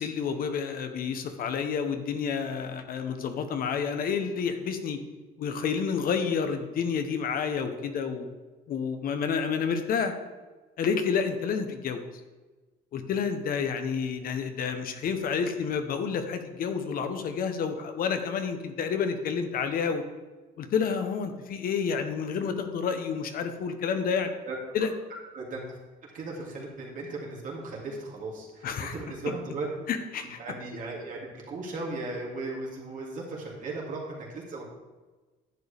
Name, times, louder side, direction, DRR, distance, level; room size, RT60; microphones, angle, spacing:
voice 1, 0.0-5.0 5.4-8.3 8.7-10.2 10.8-12.0 12.9-20.0 20.6-24.3 24.7-24.9 28.6-28.9 29.9-30.4, left 6 dB, 60° left, 7 dB, 1.0 m, -29 dB
voice 2, 26.1-29.9 30.4-34.7, right 3 dB, 50° right, -3 dB, 2.8 m, -36 dB
10.5 x 7.9 x 3.5 m, 1.3 s
cardioid pair, 110°, 17 cm